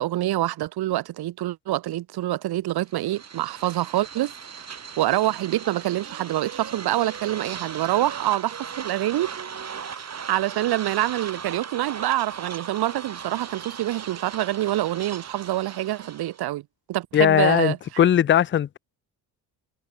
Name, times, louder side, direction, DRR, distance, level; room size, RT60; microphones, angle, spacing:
voice 1, 0.0-4.3 5.0-9.4 9.9-16.6 16.9-17.8, right 15 dB, 70° right, 1.3 m, -26 dB
sound 1, 2.9-16.4, right 7 dB, 40° right, 4.6 m, -38 dB
voice 2, 17.1-18.8, left 10 dB, 30° left, 0.5 m, -19 dB
cardioid pair, 95°, 39 cm